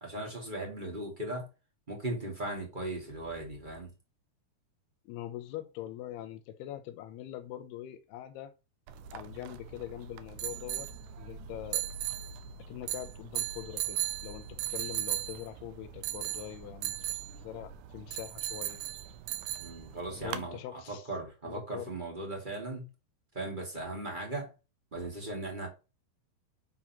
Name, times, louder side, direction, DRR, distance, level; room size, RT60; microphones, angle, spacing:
voice 1, 0.0-1.5 1.9-3.9 19.6-22.9 23.3-24.5 24.9-25.7, right 2 dB, 20° right, 1.5 m, -38 dB
voice 2, 5.1-8.5 9.1-10.9 11.2-11.9 12.6-17.0 17.4-18.8 20.2-21.1 21.4-21.9, left 12 dB, 80° left, 2.6 m, -43 dB
sound 1, 8.9-20.5, right 12 dB, 80° right, 2.8 m, -38 dB
7.6 x 4.1 x 5.8 m
omnidirectional pair, 4.8 m